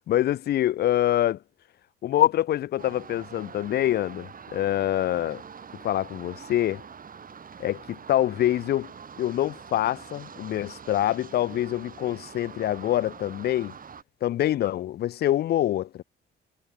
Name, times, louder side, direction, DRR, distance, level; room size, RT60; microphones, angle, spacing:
voice 1, 0.0-1.4 2.0-5.4 5.8-6.8 7.6-8.9 9.2-13.7 14.2-16.0, left 13 dB, 55° left, 0.4 m, -25 dB
sound 1, 2.8-14.0, right 6 dB, 45° right, 6.4 m, -45 dB
cardioid pair, 90°, 20 cm